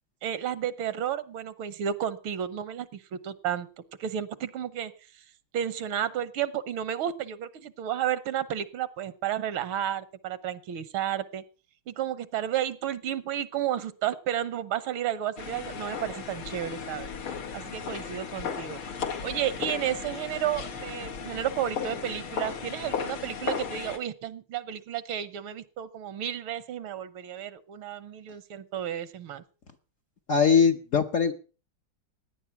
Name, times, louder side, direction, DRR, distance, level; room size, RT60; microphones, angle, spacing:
voice 1, 0.2-3.7 4.0-5.2 5.5-11.4 11.9-17.1 17.5-18.8 19.2-29.4, right 10 dB, 80° right, 17 dB, 1.8 m, -32 dB
sound 1, 15.4-24.0, left 6 dB, 85° left, 2.8 m, -35 dB
voice 2, 30.3-31.3, left 6 dB, 50° left, 6 dB, 1.0 m, -21 dB
17.0 x 10.0 x 5.8 m, 0.36 s
omnidirectional pair, 2.3 m